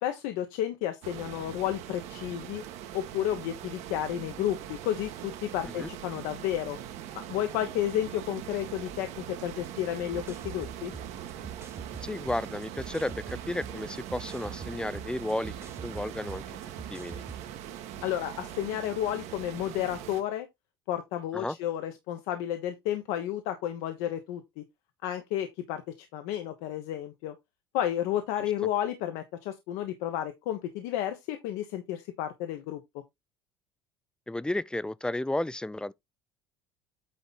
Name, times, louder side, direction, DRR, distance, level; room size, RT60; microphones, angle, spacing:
voice 1, 0.0-2.6 2.9-6.8 7.3-10.9 18.0-20.5 20.9-24.6 25.0-27.3 27.7-32.8, left 11 dB, 70° left, 1.2 m, -32 dB
sound 1, 1.0-20.2, right 10 dB, 65° right, 1.5 m, -42 dB
sound 2, 10.1-17.5, right 5 dB, 20° right, 1.3 m, -44 dB
voice 2, 12.0-15.5 15.8-16.4 16.9-17.2 21.3-21.6 34.3-35.9, left 1 dB, 5° left, 0.5 m, -33 dB
9.1 x 4.0 x 4.0 m
hypercardioid pair, 80°, 13 cm